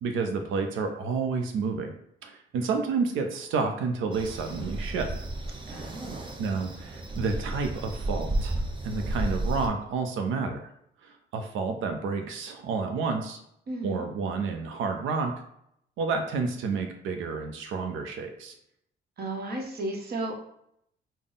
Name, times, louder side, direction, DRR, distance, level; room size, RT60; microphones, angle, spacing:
voice 1, 0.0-1.9 2.2-5.3 6.4-10.7 11.0-13.4 13.8-15.3 16.0-18.5, right 4 dB, 85° right, 5 dB, 0.5 m, -30 dB
sound 1, 4.1-9.7, right 1 dB, 25° right, 0.6 m, -33 dB
voice 2, 5.7-6.4 13.7-14.1 19.2-20.4, right 2 dB, 50° right, 1 dB, 0.9 m, -34 dB
3.6 x 2.0 x 3.9 m, 0.75 s
cardioid pair, 90°, 20 cm